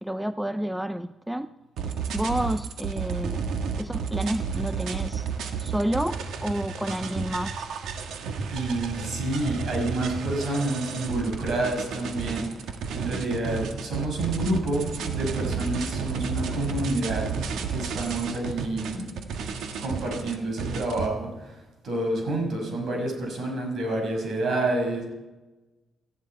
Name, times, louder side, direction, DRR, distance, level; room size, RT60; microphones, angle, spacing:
voice 1, 0.0-1.5 2.1-3.4 3.8-5.3 5.6-7.7, equal, 5° right, 11 dB, 0.4 m, -29 dB
sound 1, 1.8-21.1, right 6 dB, 90° right, 1.5 m, -32 dB
voice 2, 8.5-19.1 19.8-25.0, right 2 dB, 55° right, 1 dB, 5.6 m, -29 dB
18.0 x 14.0 x 4.5 m, 1.1 s
cardioid pair, 145°, 0 cm